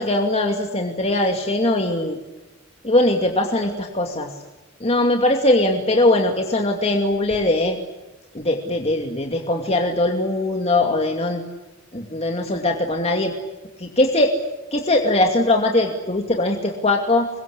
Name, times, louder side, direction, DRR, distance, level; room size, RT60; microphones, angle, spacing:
voice 1, 0.0-2.2 2.8-4.3 4.8-7.8 8.3-11.4 11.9-13.3 13.8-14.4 14.7-17.3, left 1 dB, 30° left, 2 dB, 2.6 m, -20 dB
27.0 x 23.5 x 8.6 m, 1.1 s
head